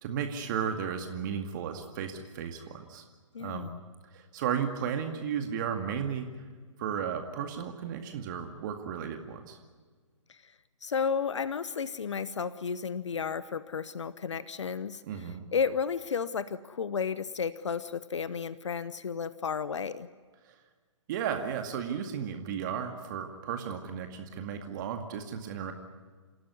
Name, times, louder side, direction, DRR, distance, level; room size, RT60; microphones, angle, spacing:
voice 1, 0.0-3.0 3.4-3.7 4.1-6.3 6.8-9.6 15.1-15.4 20.4-20.5 21.1-25.7, right 8 dB, 40° right, 5 dB, 2.2 m, -34 dB
voice 2, 3.3-3.8 10.3-10.5 10.8-20.1, left 6 dB, 65° left, 16 dB, 1.0 m, -33 dB
28.0 x 17.0 x 9.6 m, 1.5 s
figure-of-eight pair, 130°, 17 cm